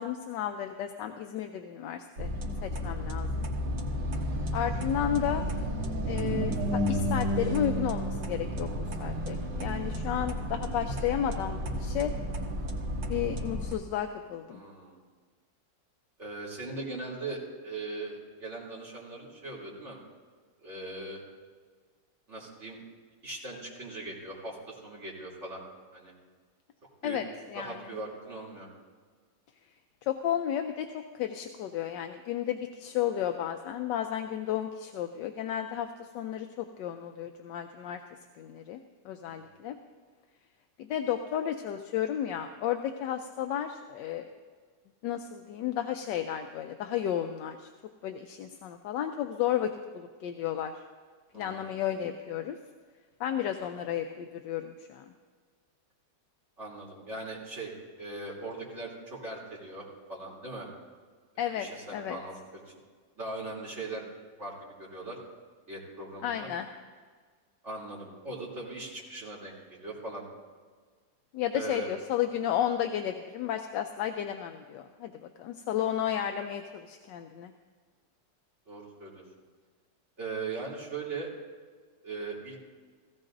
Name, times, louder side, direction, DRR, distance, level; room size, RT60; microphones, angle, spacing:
voice 1, 0.0-2.3 2.6-3.4 4.5-5.5 6.0-8.7 9.0-12.1 13.1-14.6 27.0-27.2 27.5-27.8 30.0-38.0 38.4-38.8 39.0-39.7 40.8-44.3 45.0-47.7 48.0-50.8 51.3-52.6 53.2-55.0 61.4-62.2 66.2-66.7 71.3-77.5, left 10 dB, 80° left, 6 dB, 1.3 m, -33 dB
sound 1, 2.2-13.7, equal, 85° right, 2.0 m, -32 dB
voice 2, 14.5-15.0 16.2-20.0 20.6-21.2 22.3-22.8 23.2-25.6 25.9-26.1 27.0-27.2 27.5-28.7 39.2-39.5 51.3-51.7 56.6-60.7 61.5-62.6 63.2-64.0 64.4-65.2 65.7-66.5 67.6-70.2 71.5-71.9 78.7-79.2 80.2-81.3 82.0-82.6, right 2 dB, 40° right, -5 dB, 3.4 m, -40 dB
17.0 x 16.0 x 2.6 m, 1.5 s
omnidirectional pair, 2.0 m